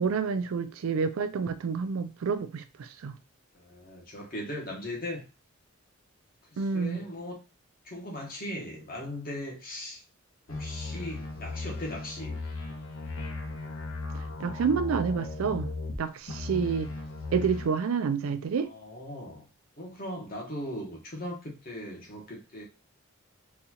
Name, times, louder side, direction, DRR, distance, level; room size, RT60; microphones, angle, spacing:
voice 1, 0.0-3.1 6.6-7.0 14.4-15.7 16.0-16.9 17.3-18.7, right 6 dB, 90° right, 0.4 m, -28 dB
voice 2, 3.5-5.2 6.5-7.4 7.8-10.0 10.5-12.4 18.6-19.5 19.8-22.6, left 1 dB, 45° left, 1.1 m, -39 dB
sound 1, 10.5-16.0 16.3-17.7, left 3 dB, 80° left, 0.9 m, -37 dB
4.0 x 2.4 x 2.8 m
head